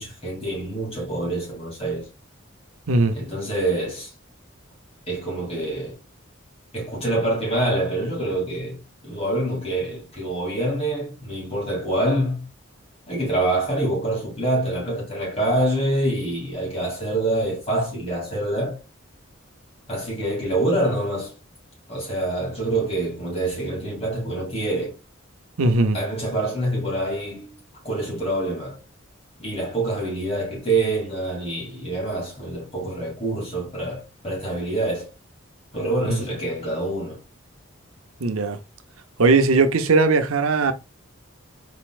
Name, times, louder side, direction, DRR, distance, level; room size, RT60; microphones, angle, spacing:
voice 1, 0.0-2.1 3.1-4.1 5.1-6.0 6.7-12.5 13.1-18.8 19.9-21.3 21.9-24.9 25.9-27.5 27.8-28.8 29.4-35.1 35.7-37.2, right 1 dB, 30° left, 2.8 m, -26 dB
voice 2, 25.6-26.0 36.1-36.2 38.2-38.6 39.2-40.7, right 3 dB, 90° right, 0.7 m, -19 dB
4.5 x 4.1 x 2.4 m
head